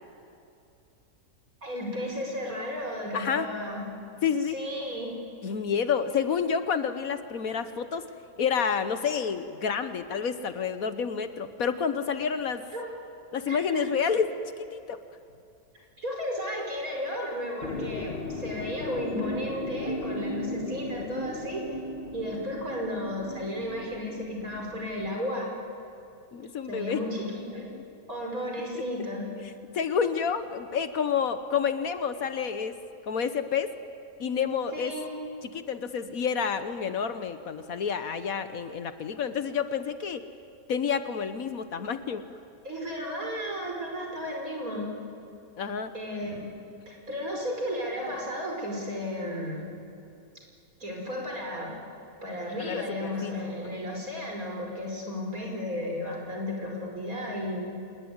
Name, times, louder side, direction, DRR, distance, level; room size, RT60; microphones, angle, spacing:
voice 1, 1.6-3.8 4.5-5.1 12.7-12.9 13.5-14.0 16.0-21.8 22.1-25.5 26.7-27.7 28.1-29.3 34.7-35.1 42.6-44.9 45.9-49.7 50.8-51.7 52.2-57.7, left 1 dB, 60° right, 0 dB, 5.6 m, -34 dB
voice 2, 3.1-3.5 4.2-4.6 5.4-8.0 8.4-12.6 13.3-14.3 14.6-15.0 26.3-27.0 27.7-27.8 29.7-32.8 33.1-33.7 34.2-35.0 35.5-40.2 40.7-42.3 45.6-45.9 52.6-53.3 53.6-53.8, left 6 dB, 65° left, 10 dB, 1.4 m, -29 dB
sound 1, 17.6-25.2, left 1 dB, 35° left, 1.5 m, -36 dB
27.0 x 20.0 x 9.6 m, 2.6 s
omnidirectional pair, 1.7 m